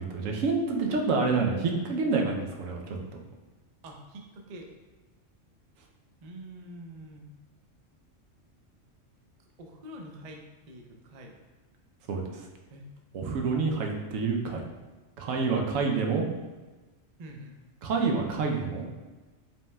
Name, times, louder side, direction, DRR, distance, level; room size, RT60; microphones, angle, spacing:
voice 1, 0.0-3.0 12.1-12.4 13.1-14.6 15.2-16.3 17.8-18.8, right 4 dB, 90° right, 1 dB, 1.0 m, -28 dB
voice 2, 3.8-4.7 6.2-7.2 9.6-11.3 12.7-12.9 17.2-17.5, right 1 dB, 55° right, 2 dB, 0.4 m, -45 dB
5.2 x 3.4 x 2.2 m, 1.2 s
omnidirectional pair, 1.3 m